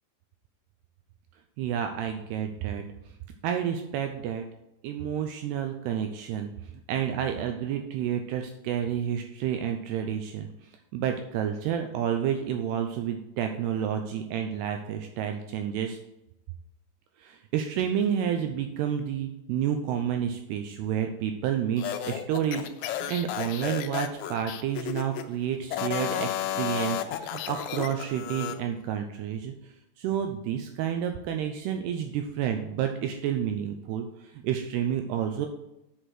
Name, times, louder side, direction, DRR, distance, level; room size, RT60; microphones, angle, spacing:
voice 1, 1.6-2.8 3.4-4.4 4.8-6.5 6.9-16.0 17.2-29.5 30.0-35.5, right 9 dB, 85° right, 5 dB, 2.4 m, -30 dB
sound 1, 21.8-25.3 25.7-28.6, left 11 dB, 85° left, 3.0 m, -32 dB
8.1 x 6.4 x 5.9 m, 0.89 s
omnidirectional pair, 5.4 m